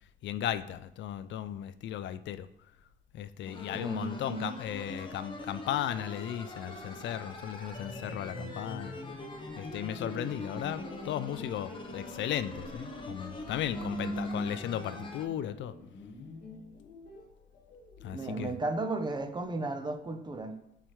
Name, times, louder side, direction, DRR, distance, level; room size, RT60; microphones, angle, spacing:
voice 1, 0.2-2.5 3.1-9.0 9.6-15.7 18.0-18.5, left 11 dB, 70° left, 14 dB, 0.4 m, -36 dB
sound 1, 3.4-15.2, left 1 dB, 25° left, 1.2 m, -43 dB
voice 2, 3.7-4.6 13.7-14.5 15.0-15.1 18.1-20.6, right 2 dB, 20° right, 7 dB, 0.7 m, -35 dB
sound 2, 5.6-18.9, left 3 dB, 50° left, 1.9 m, -51 dB
7.5 x 4.6 x 3.2 m, 0.77 s
cardioid pair, 90°, 20 cm